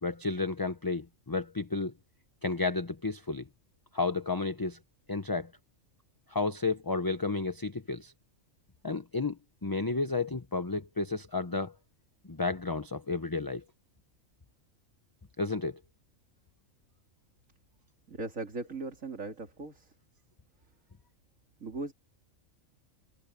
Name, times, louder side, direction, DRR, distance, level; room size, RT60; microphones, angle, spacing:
voice 1, 0.0-1.9 2.4-3.5 3.9-4.8 5.1-5.5 6.3-8.1 8.8-11.7 12.3-13.6 15.4-15.8, left 3 dB, 20° left, 0.7 m, -32 dB
voice 2, 18.1-19.9 21.6-21.9, right 3 dB, 75° right, 3.3 m, -38 dB
omnidirectional pair, 1.4 m